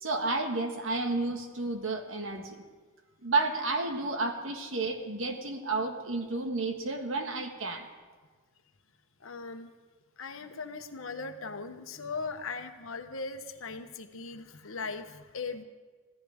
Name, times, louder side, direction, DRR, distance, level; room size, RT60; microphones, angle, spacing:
voice 1, 0.0-2.6 3.2-7.9, right 3 dB, 70° right, 5 dB, 1.7 m, -31 dB
voice 2, 9.2-9.7 10.2-15.6, left 4 dB, 75° left, 7 dB, 1.1 m, -39 dB
25.5 x 15.5 x 3.6 m, 1.4 s
head